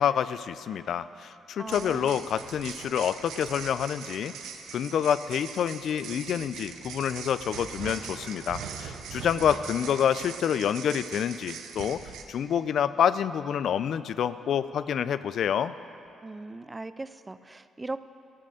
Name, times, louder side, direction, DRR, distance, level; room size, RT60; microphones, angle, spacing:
voice 1, 0.0-4.3 4.7-12.0 12.3-15.7, left 8 dB, 65° left, 14 dB, 0.3 m, -27 dB
voice 2, 1.6-2.1 16.2-18.0, right 2 dB, 20° right, 13 dB, 0.4 m, -38 dB
sound 1, 1.7-12.2, right 7 dB, 85° right, 0.8 m, -41 dB
14.5 x 6.6 x 6.5 m, 2.7 s
cardioid pair, 90°, 0 cm